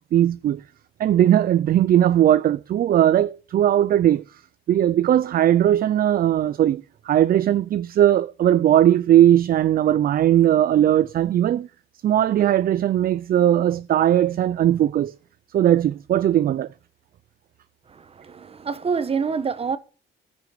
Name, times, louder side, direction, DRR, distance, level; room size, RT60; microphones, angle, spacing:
voice 1, 0.1-0.6 1.0-4.2 4.7-11.7 12.0-15.1 15.5-16.7, right 11 dB, 50° right, 0.5 m, -18 dB
voice 2, 17.9-19.8, right 5 dB, 30° right, 1.3 m, -27 dB
15.0 x 6.2 x 6.8 m
cardioid pair, 130°, 20 cm